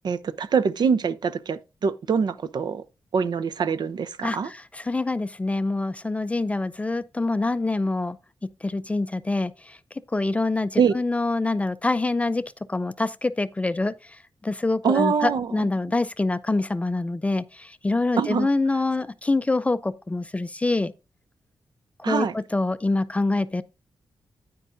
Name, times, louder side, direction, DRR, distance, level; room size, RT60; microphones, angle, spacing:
voice 1, 0.0-2.8 3.1-4.5 10.8-10.9 14.8-15.6 18.2-18.5 22.0-22.3, right 6 dB, 60° right, 0.6 m, -24 dB
voice 2, 4.2-8.2 8.6-9.8 10.1-12.4 12.7-13.9 14.4-20.9 22.0-23.6, left 2 dB, 15° left, 0.4 m, -25 dB
9.8 x 9.2 x 2.6 m
wide cardioid pair, 135°, 8 cm